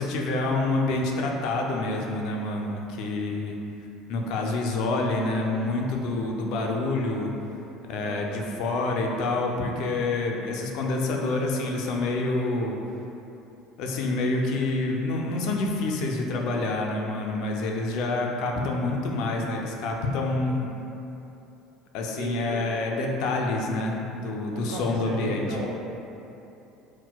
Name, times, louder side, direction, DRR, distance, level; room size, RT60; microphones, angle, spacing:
voice 1, 0.0-3.5 4.1-7.3 7.9-12.8 13.8-20.7 21.9-25.5, left 2 dB, 65° left, 0 dB, 0.4 m, -27 dB
voice 2, 22.2-22.7 24.5-25.8, right 3 dB, 80° right, 0 dB, 0.4 m, -35 dB
4.3 x 2.1 x 2.2 m, 2.9 s
cardioid pair, 145°, 0 cm